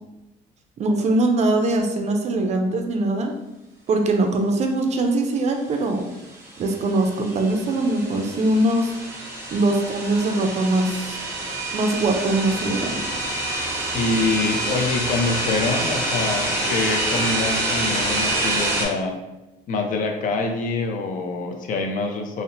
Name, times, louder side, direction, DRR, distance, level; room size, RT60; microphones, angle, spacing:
voice 1, 0.8-3.3 3.9-6.0 6.6-8.9 9.5-11.1 11.7-13.0, right 2 dB, 40° right, 4 dB, 0.4 m, -22 dB
sound 1, 6.3-18.8, right 1 dB, 15° right, 0.7 m, -27 dB
voice 2, 13.9-19.2 19.7-22.4, left 3 dB, 50° left, 3 dB, 0.4 m, -25 dB
2.7 x 2.0 x 2.6 m, 0.98 s
cardioid pair, 110°, 17 cm